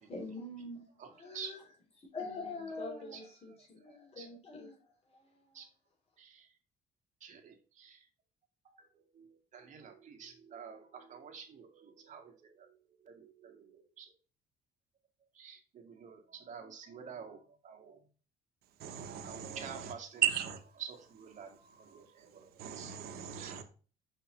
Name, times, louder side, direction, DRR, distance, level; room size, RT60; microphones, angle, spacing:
voice 1, 0.1-0.8 1.2-1.6 2.0-4.8, left 3 dB, 35° left, 3.4 m, -43 dB
voice 2, 1.0-1.5 2.7-3.3 3.8-4.3 5.5-5.7 6.2-6.5 7.2-8.1 8.6-14.1 15.3-18.1 19.2-20.2 20.8-23.0 23.3-23.6, right 7 dB, 45° right, 2.0 m, -50 dB
voice 3, 18.8-19.9 20.2-20.6 22.6-23.6, right 10 dB, 70° right, 1.0 m, -35 dB
6.2 x 5.6 x 3.2 m
cardioid pair, 110°, 17 cm